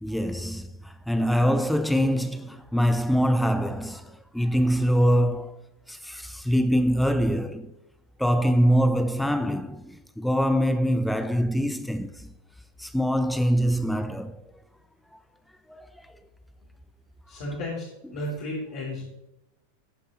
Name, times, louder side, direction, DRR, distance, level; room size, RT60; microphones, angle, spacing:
voice 1, 0.0-5.6 5.9-7.7 8.2-12.3 12.8-14.4 15.7-15.9, equal, ahead, 0.5 m, -24 dB
voice 2, 17.3-19.1, left 1 dB, 50° left, 3.2 m, -33 dB
15.0 x 8.6 x 3.0 m
figure-of-eight pair, 90°, 0 cm